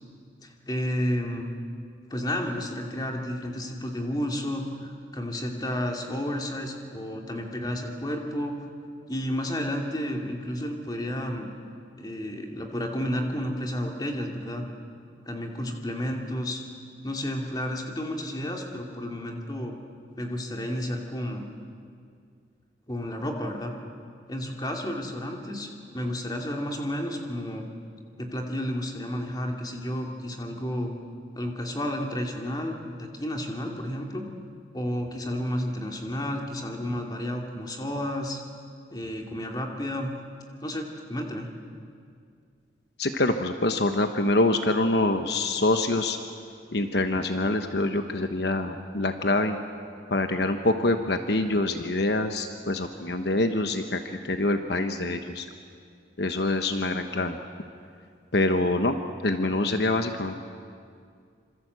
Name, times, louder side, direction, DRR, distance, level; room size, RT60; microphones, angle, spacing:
voice 1, 0.4-1.5 2.1-8.6 9.1-11.5 12.0-14.7 15.3-16.6 17.0-19.8 20.2-21.4 22.9-23.7 24.3-27.7 28.2-30.9 31.4-34.3 34.7-38.4 38.9-40.1 40.6-41.5, equal, 20° left, 2 dB, 2.6 m, -31 dB
voice 2, 43.0-46.2 46.7-49.6 50.1-55.5 56.2-57.4 58.3-59.0 59.2-60.3, left 2 dB, 60° left, 7 dB, 1.2 m, -25 dB
26.5 x 26.0 x 8.1 m, 2.2 s
head